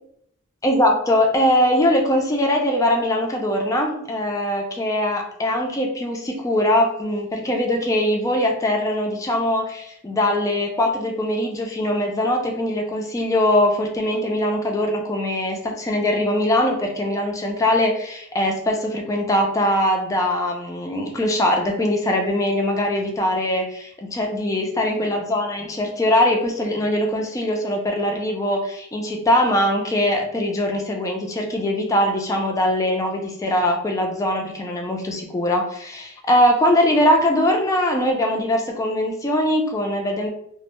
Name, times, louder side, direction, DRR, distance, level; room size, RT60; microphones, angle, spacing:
voice 1, 0.6-40.3, left 1 dB, 15° left, 2 dB, 0.3 m, -21 dB
2.1 x 2.0 x 2.9 m, 0.71 s
head